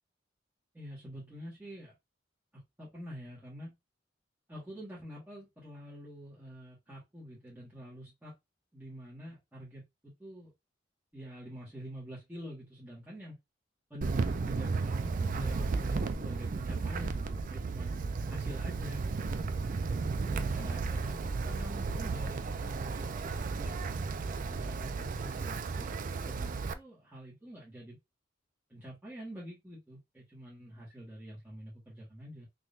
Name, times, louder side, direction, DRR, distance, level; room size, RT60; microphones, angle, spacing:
voice 1, 0.7-1.9 2.8-3.7 4.5-8.3 8.7-10.5 11.1-13.4 13.9-17.9 18.3-19.4 20.1-23.8 24.4-28.0 28.7-32.5, equal, 10° right, -8 dB, 1.6 m, -46 dB
Wind, 14.0-26.7, right 4 dB, 45° right, 0.4 m, -34 dB
3.7 x 3.0 x 2.6 m, 0.20 s
head